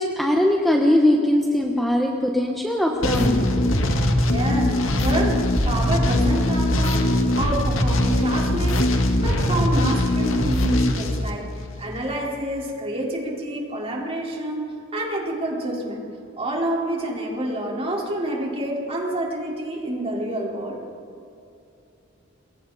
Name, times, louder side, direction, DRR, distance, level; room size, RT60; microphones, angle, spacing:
voice 1, 0.0-3.7, left 1 dB, ahead, 0 dB, 1.2 m, -21 dB
sound 1, 3.0-11.9, left 1 dB, 85° left, 1.9 m, -21 dB
voice 2, 4.3-8.9 9.2-11.5 11.8-16.1 16.4-20.8, right 1 dB, 30° right, -2 dB, 4.4 m, -28 dB
27.5 x 23.0 x 4.2 m, 2.7 s
head